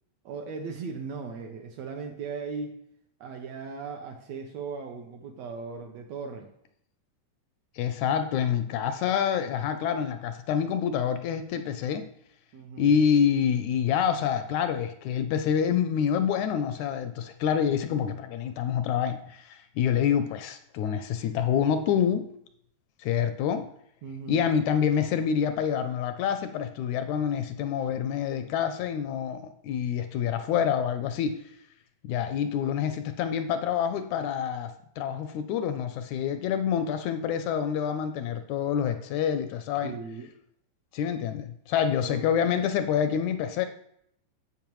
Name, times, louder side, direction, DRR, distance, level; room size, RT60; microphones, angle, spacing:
voice 1, 0.2-2.8 3.2-6.5 12.5-12.9 24.0-24.4 39.8-40.3 42.0-42.2, right 5 dB, 70° right, 4 dB, 1.7 m, -38 dB
voice 2, 7.8-12.1 12.8-22.3 23.0-23.7 24.3-31.4 32.0-40.0 40.9-43.7, left 8 dB, 80° left, 9 dB, 1.8 m, -27 dB
10.5 x 7.8 x 3.0 m, 0.71 s
omnidirectional pair, 3.6 m